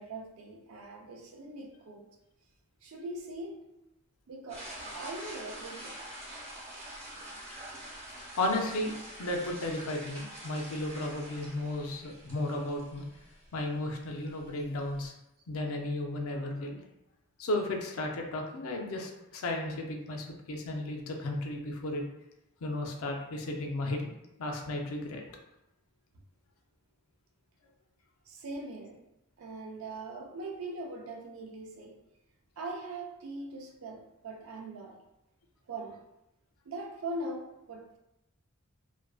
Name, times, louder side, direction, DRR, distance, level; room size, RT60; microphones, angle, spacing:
voice 1, 0.0-2.1 2.8-3.6 4.3-4.7 4.9-6.0 28.3-29.0 29.4-32.0 32.6-35.0 35.7-36.0 36.7-38.0, right 2 dB, 70° right, 2 dB, 0.4 m, -41 dB
sound 1, 4.5-15.1, right 1 dB, 30° right, 0.8 m, -46 dB
voice 2, 8.2-8.9 9.2-13.0 13.5-15.1 15.5-16.8 17.4-22.0 22.6-24.1 24.4-25.2, left 1 dB, 70° left, 2 dB, 0.4 m, -34 dB
2.4 x 2.2 x 2.3 m, 0.88 s
head